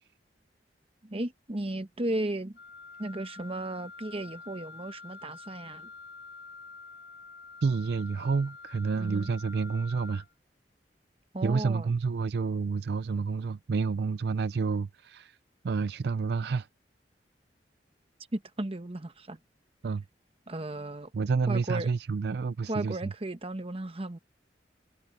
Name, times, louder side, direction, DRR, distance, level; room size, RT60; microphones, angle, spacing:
voice 1, 1.0-2.6 3.0-5.9 9.0-9.3 11.3-11.9 18.3-19.4 20.5-21.1 21.5-21.9 22.7-24.2, right 1 dB, 35° right, 1.1 m, -35 dB
Wind instrument woodwind instrument, 2.6-10.3, left 4 dB, 70° left, 6.8 m, -47 dB
voice 2, 7.6-10.2 11.4-15.4 15.6-16.7 19.8-20.0 21.1-23.1, right 4 dB, 65° right, 0.4 m, -29 dB
head